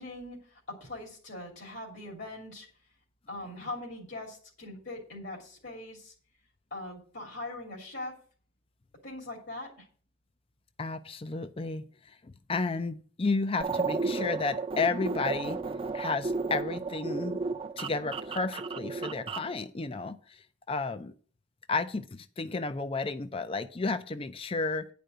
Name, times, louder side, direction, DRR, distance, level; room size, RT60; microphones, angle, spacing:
voice 1, 0.0-2.7 3.3-6.1 6.7-8.1 9.0-9.9, left 2 dB, 65° left, -1 dB, 2.8 m, -41 dB
voice 2, 10.8-15.6 15.9-17.4 17.8-21.1 21.7-24.9, left 3 dB, 30° left, 11 dB, 0.4 m, -32 dB
sound 1, 13.6-19.5, right 4 dB, 30° right, 0.6 m, -33 dB
10.0 x 5.1 x 7.8 m, 0.43 s
head